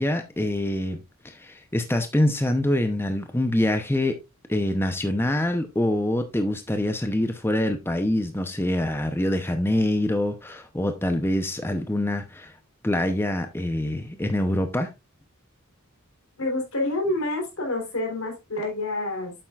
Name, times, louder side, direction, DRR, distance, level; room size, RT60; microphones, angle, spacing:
voice 1, 0.0-4.2 4.5-12.5 12.8-14.9, left 1 dB, 10° left, 0.6 m, -25 dB
voice 2, 16.4-19.3, left 2 dB, 75° left, 3.3 m, -28 dB
8.6 x 7.7 x 2.4 m
head